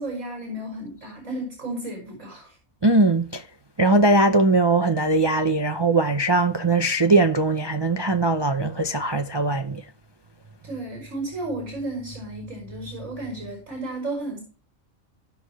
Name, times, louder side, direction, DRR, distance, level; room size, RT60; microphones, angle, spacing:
voice 1, 0.0-2.5 10.6-14.4, right 2 dB, 65° right, 5.5 m, -33 dB
voice 2, 2.8-3.4 3.8-9.8, right 2 dB, 35° right, 0.4 m, -20 dB
16.5 x 6.4 x 3.0 m
omnidirectional pair, 1.4 m